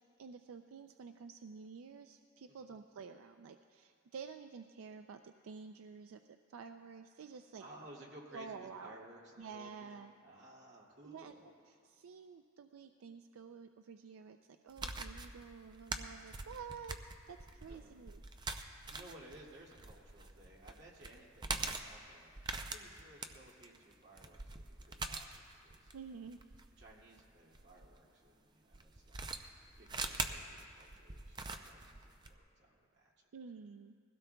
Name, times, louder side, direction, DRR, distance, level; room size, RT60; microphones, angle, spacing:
voice 1, 0.2-7.7 8.3-9.0 9.4-10.1 11.0-11.4 11.7-17.0 17.3-18.2 25.9-26.4 33.3-33.9, right 5 dB, 90° right, 7 dB, 0.4 m, -50 dB
voice 2, 7.6-11.5 17.7-18.0 18.7-25.9 26.8-29.3 29.8-33.3, right 1 dB, 55° right, -3 dB, 2.2 m, -58 dB
sound 1, 14.7-27.9 28.7-32.3, right 3 dB, 20° right, 0.5 m, -43 dB
21.0 x 16.5 x 2.3 m, 2.3 s
head